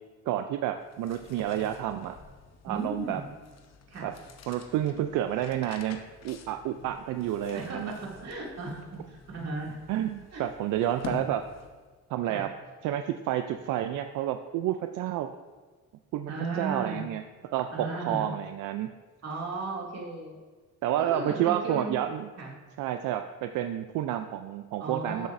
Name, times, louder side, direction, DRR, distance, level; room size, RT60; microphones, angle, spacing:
voice 1, 0.3-2.1 2.6-3.2 4.0-4.1 4.5-7.9 9.9-11.4 12.1-12.5 12.8-15.3 16.1-17.2 17.5-18.9 20.8-22.3 22.8-25.3, right 11 dB, 85° right, 7 dB, 0.5 m, -30 dB
sound 1, 0.8-12.0, left 5 dB, 60° left, 0.9 m, -47 dB
voice 2, 2.7-3.3 3.9-4.1 7.5-8.8 9.1-9.8 10.3-10.4 12.3-12.5 16.3-17.0 17.7-18.3 19.2-20.4 21.0-22.0 22.4-22.5 24.8-25.3, right 3 dB, 55° right, -3 dB, 2.4 m, -35 dB
12.5 x 7.3 x 2.6 m, 1.4 s
cardioid pair, 90°, 30 cm